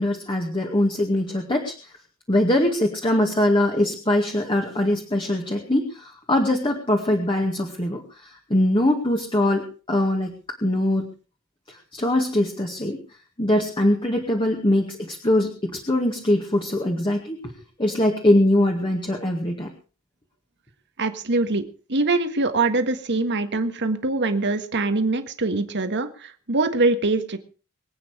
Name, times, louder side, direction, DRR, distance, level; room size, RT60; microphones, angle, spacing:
voice 1, 0.0-1.7 2.3-10.3 10.6-11.1 11.7-13.0 13.4-17.4 17.8-19.7, left 1 dB, 25° left, 2 dB, 2.0 m, -22 dB
voice 2, 21.0-27.4, right 3 dB, 55° right, 8 dB, 1.7 m, -23 dB
23.5 x 8.9 x 4.9 m, 0.36 s
head